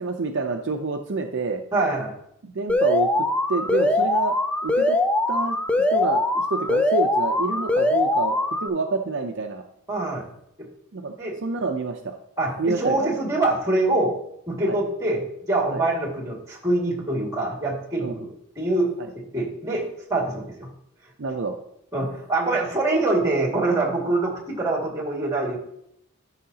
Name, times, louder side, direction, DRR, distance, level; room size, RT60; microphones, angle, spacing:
voice 1, 0.0-1.6 2.4-3.1 3.5-4.4 4.6-5.0 5.3-5.6 5.9-8.4 8.6-9.6 10.9-11.1 11.4-12.2 12.6-13.1 14.7-14.8 15.7-15.8 18.0-18.2 21.2-21.5, right 3 dB, 60° right, 4 dB, 0.6 m, -27 dB
voice 2, 1.7-2.1 9.9-10.3 11.2-11.3 12.4-14.2 14.5-15.2 15.5-18.3 18.6-18.9 19.3-20.7 21.9-25.6, right 2 dB, 15° right, -2 dB, 2.0 m, -24 dB
Alarm, 2.7-8.7, left 2 dB, 5° left, 0.4 m, -22 dB
11.5 x 5.6 x 2.8 m, 0.75 s
head